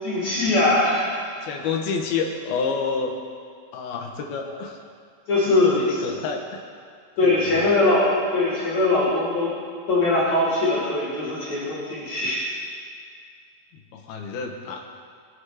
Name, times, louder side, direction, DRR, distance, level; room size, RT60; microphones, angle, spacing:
voice 1, 0.0-1.2 5.3-6.0 7.2-9.5 9.9-12.4, left 2 dB, 50° left, -7 dB, 3.7 m, -21 dB
voice 2, 1.4-3.1 3.7-4.8 5.6-6.6 7.2-7.7 13.7-14.9, left 5 dB, 80° left, 3 dB, 3.2 m, -29 dB
22.0 x 8.5 x 4.9 m, 2.2 s
omnidirectional pair, 4.3 m